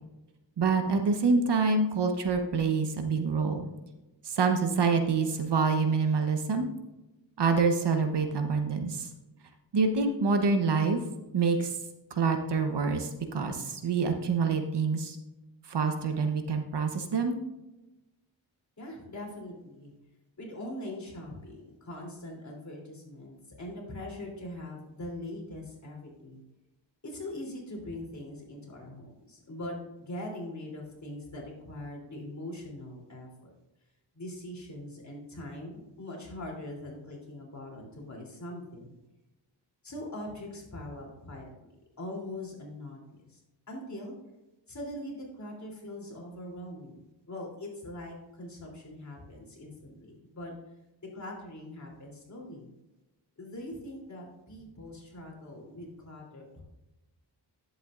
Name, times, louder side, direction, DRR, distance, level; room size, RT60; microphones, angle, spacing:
voice 1, 0.6-3.7 4.2-6.7 7.4-9.1 9.7-11.0 11.3-11.8 12.1-15.2 15.7-17.4, right 4 dB, 60° right, 6 dB, 1.1 m, -26 dB
voice 2, 18.8-19.9 20.4-26.4 27.0-33.5 34.1-38.9 39.8-41.7 42.0-43.4 43.7-44.1 44.7-50.5 51.1-52.7 53.4-56.6, left 1 dB, 40° left, -1 dB, 3.3 m, -42 dB
10.5 x 8.0 x 2.5 m, 1.0 s
cardioid pair, 85°, 46 cm